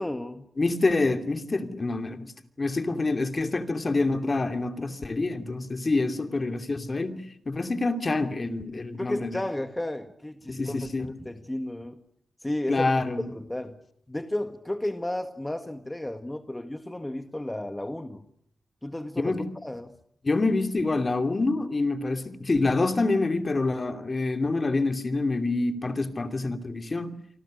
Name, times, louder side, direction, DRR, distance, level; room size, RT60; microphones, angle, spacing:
voice 1, 0.0-0.5 9.0-12.0 12.4-12.9 13.2-13.8 14.1-18.2 18.8-19.4 19.6-19.9, left 1 dB, 15° left, 1.7 m, -33 dB
voice 2, 0.6-2.3 2.6-9.4 10.5-11.1 12.7-13.3 19.2-19.5 20.2-27.1, left 3 dB, 40° left, 2.7 m, -27 dB
29.0 x 25.0 x 6.6 m
cardioid pair, 60°, 0 cm